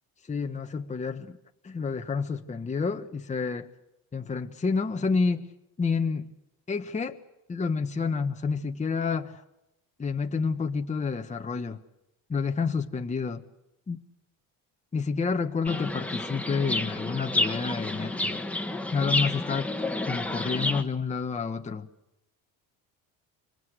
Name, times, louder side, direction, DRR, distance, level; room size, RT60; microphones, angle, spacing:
voice 1, 0.3-1.4 1.6-3.7 4.1-5.5 5.8-6.3 6.7-7.2 7.5-9.4 10.0-11.8 12.3-13.4 13.9-14.0 14.9-18.4 18.9-19.7 20.1-21.9, left 5 dB, 20° left, 5 dB, 1.3 m, -29 dB
Chirp tweet, 15.6-20.8, left 2 dB, 5° left, 1.8 m, -30 dB
26.5 x 24.0 x 8.1 m, 0.90 s
cardioid pair, 115°, 37 cm